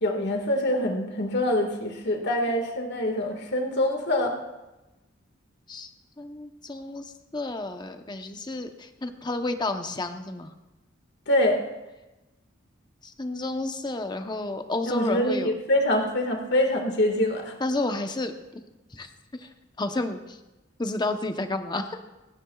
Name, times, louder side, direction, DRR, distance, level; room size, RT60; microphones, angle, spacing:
voice 1, 0.0-4.3 11.3-11.6 14.9-17.5, left 1 dB, 60° left, 3 dB, 1.9 m, -25 dB
voice 2, 6.2-10.5 13.0-15.5 17.6-18.3 18.9-19.1 19.4-19.5 19.8-20.4 20.8-22.0, left 2 dB, 20° left, 6 dB, 0.9 m, -31 dB
28.0 x 9.8 x 2.4 m, 1.0 s
head